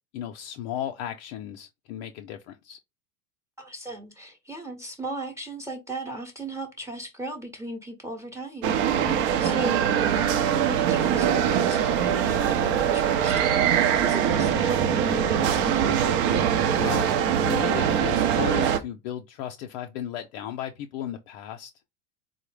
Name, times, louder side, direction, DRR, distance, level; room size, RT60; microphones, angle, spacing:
voice 1, 0.1-2.8 8.9-9.2 16.7-17.1 17.4-21.7, left 10 dB, 55° left, 0.5 m, -35 dB
voice 2, 3.6-8.8 9.4-9.8 10.1-16.2, right 2 dB, 5° right, 0.7 m, -36 dB
sound 1, 8.6-18.8, right 9 dB, 55° right, 0.6 m, -23 dB
3.9 x 2.0 x 3.2 m
hypercardioid pair, 95°, 40 cm